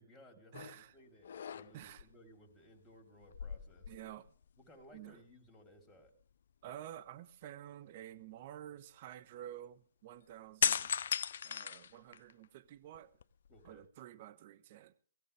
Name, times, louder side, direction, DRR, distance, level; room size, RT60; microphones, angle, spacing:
voice 1, 0.0-3.9 4.6-6.1 13.5-13.9, equal, 5° left, 3.9 m, -60 dB
sound 1, 0.5-0.8 1.2-2.0 3.2-4.5 4.8-5.0 10.6-12.4 12.9-13.8, left 8 dB, 60° left, 0.6 m, -37 dB
voice 2, 0.5-0.9 1.7-2.0 3.9-4.3 4.9-5.2 6.6-10.9 11.4-13.1 13.6-14.9, right 11 dB, 45° right, 1.2 m, -50 dB
20.0 x 15.0 x 3.5 m
hypercardioid pair, 140°, 0 cm